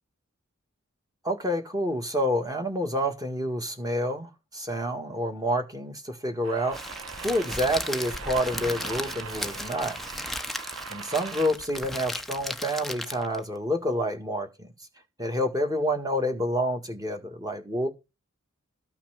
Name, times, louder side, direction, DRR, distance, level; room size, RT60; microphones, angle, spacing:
voice 1, 1.2-6.8 7.2-10.0 10.9-14.7 15.2-17.9, equal, 20° right, 1.8 m, -28 dB
sound 1, 6.4-11.5, right 6 dB, 85° right, 0.9 m, -41 dB
Crackle, 6.7-13.4, left 1 dB, ahead, 0.6 m, -36 dB
13.5 x 5.8 x 5.7 m
head